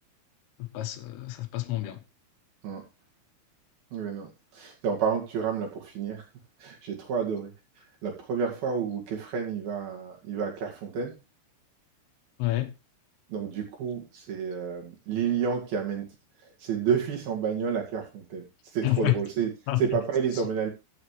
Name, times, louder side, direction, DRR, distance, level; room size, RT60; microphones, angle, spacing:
voice 1, 0.6-2.0 12.4-12.7 18.8-19.2 19.7-19.8 20.3-20.4, left 17 dB, 80° left, 3.6 m, -28 dB
voice 2, 3.9-6.2 6.6-7.5 8.0-11.2 13.3-16.1 16.4-18.5 18.7-19.5 19.8-20.7, right 6 dB, 55° right, 3.6 m, -30 dB
15.5 x 7.7 x 3.2 m
omnidirectional pair, 5.9 m